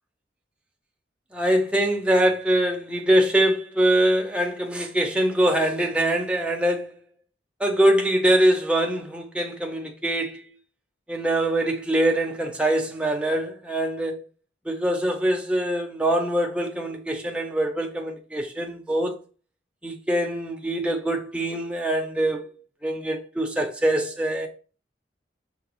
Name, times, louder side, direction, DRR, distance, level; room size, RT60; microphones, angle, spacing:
voice 1, 1.3-6.9 7.6-10.4 11.1-14.2 14.7-19.1 19.8-22.5 22.8-24.5, right 1 dB, 5° right, 0.6 m, -23 dB
5.7 x 2.3 x 3.0 m
head